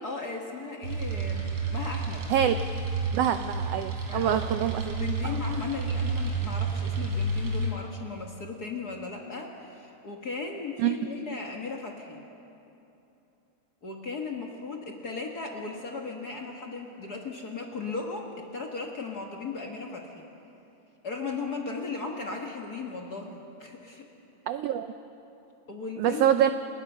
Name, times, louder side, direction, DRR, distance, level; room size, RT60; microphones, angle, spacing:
voice 1, 0.0-2.2 4.1-4.4 4.9-12.2 13.8-20.1 21.0-24.1 25.7-26.3, left 4 dB, 40° left, 1 dB, 1.5 m, -36 dB
sound 1, 0.8-7.7, right 3 dB, 45° right, 3.9 m, -30 dB
voice 2, 3.1-5.3 10.8-11.0 24.5-24.9 26.0-26.5, right 10 dB, 85° right, 9 dB, 1.4 m, -25 dB
29.5 x 19.5 x 5.6 m, 2.9 s
omnidirectional pair, 3.5 m